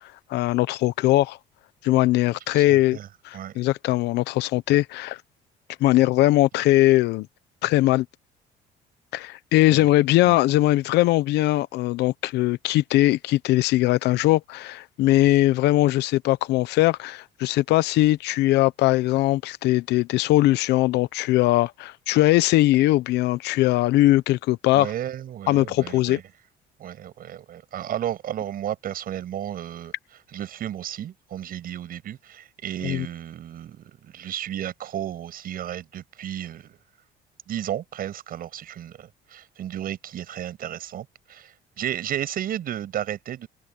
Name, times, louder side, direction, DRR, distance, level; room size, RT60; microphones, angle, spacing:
voice 1, 0.3-1.4 1.8-3.0 3.2-5.2 5.8-7.3 7.6-8.1 9.1-24.9 25.5-26.2 32.8-33.1, left 16 dB, 85° left, 0.9 m, -20 dB
voice 2, 2.5-3.1 3.3-3.6 9.7-9.9 10.2-10.4 24.7-26.2 26.8-29.9 30.3-36.8 37.5-43.5, right 11 dB, 60° right, 6.9 m, -33 dB
cardioid pair, 110°, 17 cm